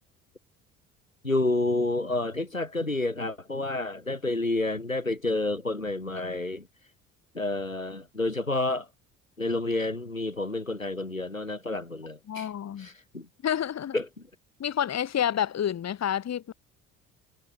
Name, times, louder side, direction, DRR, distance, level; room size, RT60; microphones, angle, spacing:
voice 1, 1.2-6.7 7.3-8.9 9.4-12.5 12.8-13.3 13.9-14.1, left 2 dB, 90° left, 5.6 m, -29 dB
voice 2, 12.3-12.9 13.4-14.0 14.6-16.5, left 9 dB, 40° left, 4.1 m, -29 dB
figure-of-eight pair, 55°, 39 cm